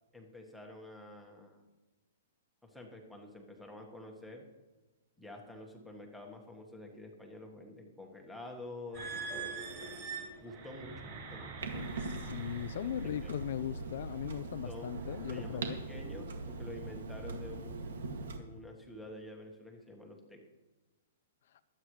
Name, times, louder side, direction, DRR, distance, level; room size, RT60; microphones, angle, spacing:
voice 1, 0.1-1.7 2.6-4.5 5.2-12.0 12.8-13.3 14.6-14.9 15.3-18.1 18.4-20.4, left 1 dB, ahead, 0 dB, 1.3 m, -49 dB
sound 1, 8.9-13.4 14.1-14.4 15.0-15.3, right 4 dB, 25° right, 4.0 m, -44 dB
Clock, 11.6-18.4, right 3 dB, 85° right, 2.1 m, -41 dB
voice 2, 12.0-15.8, left 10 dB, 45° left, 13 dB, 0.4 m, -39 dB
23.0 x 8.8 x 3.2 m, 1.2 s
hypercardioid pair, 175°, 0 cm